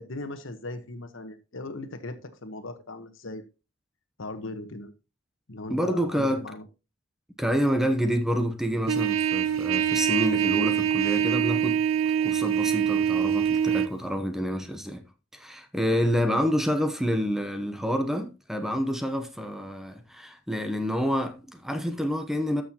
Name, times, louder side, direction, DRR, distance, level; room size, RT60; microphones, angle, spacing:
voice 1, 0.0-3.4 4.2-4.9 5.5-6.6 16.2-16.5, left 2 dB, 75° left, 1.2 m, -38 dB
voice 2, 5.7-6.5 7.4-11.8 12.2-15.0 15.3-22.6, equal, ahead, 0.8 m, -28 dB
Trumpet, 8.9-13.9, right 8 dB, 90° right, 0.5 m, -24 dB
13.0 x 6.4 x 2.9 m
head